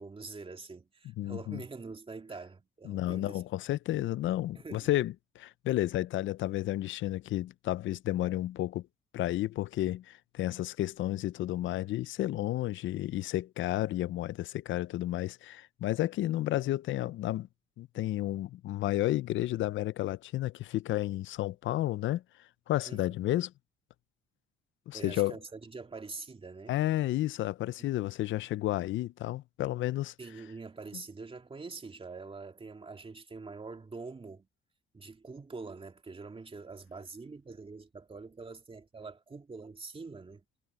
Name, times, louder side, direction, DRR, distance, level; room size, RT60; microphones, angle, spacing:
voice 1, 0.0-3.4 4.5-4.9 22.9-23.0 24.9-26.8 28.0-28.1 30.2-34.5 34.9-40.4, right 4 dB, 25° right, 2.3 m, -45 dB
voice 2, 1.2-1.6 2.8-8.8 9.1-17.5 17.8-22.2 22.7-23.5 24.9-25.3 26.7-30.1, left 15 dB, 75° left, 0.6 m, -32 dB
cardioid pair, 90°, 20 cm